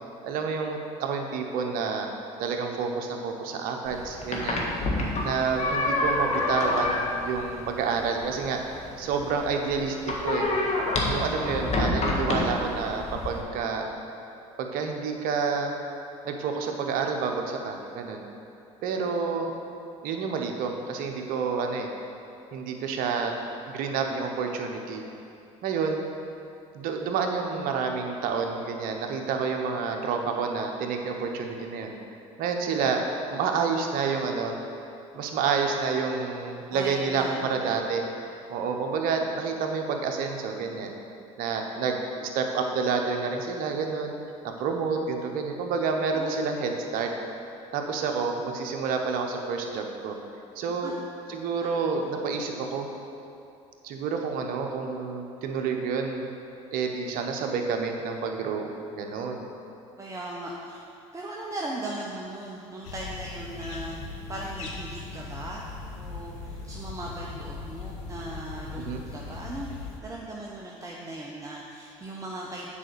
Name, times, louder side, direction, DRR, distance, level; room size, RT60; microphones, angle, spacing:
voice 1, 0.2-2.1 2.4-4.7 5.2-10.5 11.1-13.9 14.6-15.7 16.2-18.3 18.8-19.5 20.0-21.9 22.5-23.3 23.7-25.0 25.6-26.0 26.7-31.9 32.4-33.0 33.3-34.6 35.1-38.0 38.5-40.9 41.4-44.1 44.4-47.1 47.7-50.2 50.5-50.9 51.3-52.9 53.8-56.3 56.7-59.5 68.8-69.0, right 5 dB, 65° right, 3 dB, 1.0 m, -29 dB
sound 1, 3.9-13.4, left 2 dB, 45° left, 1.6 m, -28 dB
voice 2, 36.7-37.7 46.1-46.4 50.7-50.9 51.6-51.7 52.0-52.2 60.0-60.9 61.1-64.0 64.3-65.7 65.9-72.7, right 1 dB, 20° right, -3 dB, 1.0 m, -38 dB
sound 2, 62.8-70.0, left 4 dB, 80° left, 0.9 m, -39 dB
7.4 x 5.1 x 6.9 m, 2.6 s
hypercardioid pair, 70°, 16 cm